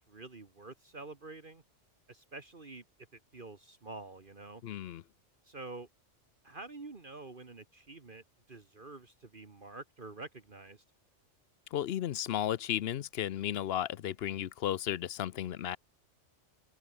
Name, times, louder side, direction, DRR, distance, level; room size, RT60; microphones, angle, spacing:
voice 1, 0.0-1.6 2.1-2.8 3.1-4.6 5.4-5.9 6.4-10.8, right 3 dB, 45° right, 1.9 m, -48 dB
voice 2, 4.6-5.0 11.7-15.8, left 11 dB, 60° left, 0.8 m, -34 dB
open air
omnidirectional pair, 1.3 m